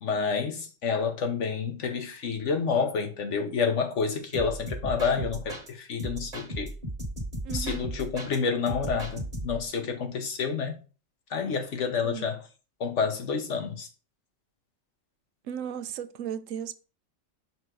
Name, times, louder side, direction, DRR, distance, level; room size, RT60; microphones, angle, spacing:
voice 1, 0.0-6.7 7.5-10.7 11.3-12.4 12.8-13.9, left 5 dB, 70° left, 1.4 m, -29 dB
sound 1, 4.3-5.7 6.0-8.4 8.7-9.7, right 1 dB, 30° right, 1.5 m, -36 dB
voice 2, 7.4-7.9 12.0-12.3 15.5-16.8, right 8 dB, 80° right, 1.0 m, -36 dB
5.6 x 4.5 x 3.8 m
omnidirectional pair, 1.3 m